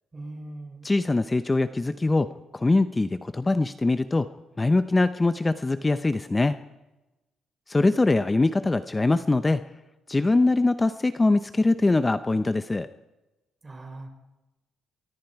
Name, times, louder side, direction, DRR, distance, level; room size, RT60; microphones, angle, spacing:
voice 1, 0.1-0.9 13.6-14.1, right 2 dB, 25° right, 4 dB, 5.4 m, -40 dB
voice 2, 0.8-4.3 4.6-6.6 7.7-9.6 10.1-12.9, left 2 dB, 20° left, 11 dB, 0.8 m, -23 dB
24.5 x 23.5 x 4.8 m, 1.0 s
cardioid pair, 90°, 0 cm